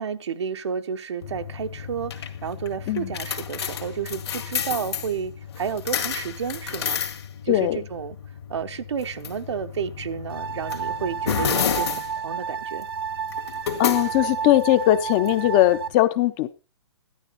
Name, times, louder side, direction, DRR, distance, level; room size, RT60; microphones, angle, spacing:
voice 1, 0.0-7.0 7.4-8.2 8.5-12.9, right 7 dB, 80° right, 0.9 m, -31 dB
sound 1, 1.2-15.9, left 8 dB, 65° left, 2.0 m, -32 dB
voice 2, 7.5-7.8 13.8-16.5, left 14 dB, 15° left, 0.5 m, -20 dB
sound 2, 10.3-15.9, right 7 dB, 55° right, 0.7 m, -31 dB
11.5 x 11.0 x 4.0 m
hypercardioid pair, 175°, 15 cm